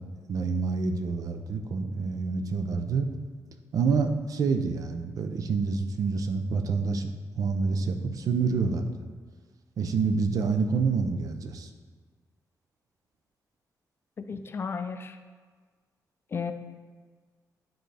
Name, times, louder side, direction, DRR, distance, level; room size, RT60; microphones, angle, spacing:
voice 1, 0.3-3.1 3.7-7.1 7.4-8.9 9.8-11.7, right 4 dB, 65° right, 7 dB, 0.5 m, -27 dB
voice 2, 14.2-15.2 16.3-16.5, left 5 dB, 40° left, 8 dB, 0.4 m, -33 dB
9.0 x 3.8 x 3.4 m, 1.5 s
wide cardioid pair, 130°, 7 cm